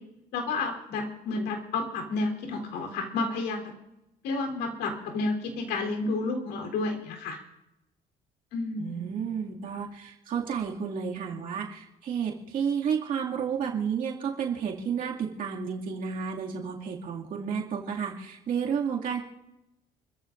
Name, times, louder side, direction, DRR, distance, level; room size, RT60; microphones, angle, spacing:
voice 1, 0.3-3.7 4.2-7.4 8.5-9.0, left 3 dB, 90° left, 2 dB, 3.7 m, -31 dB
voice 2, 8.8-19.2, right 7 dB, 55° right, -2 dB, 2.4 m, -31 dB
29.0 x 14.5 x 2.6 m, 0.90 s
cardioid pair, 110°, 17 cm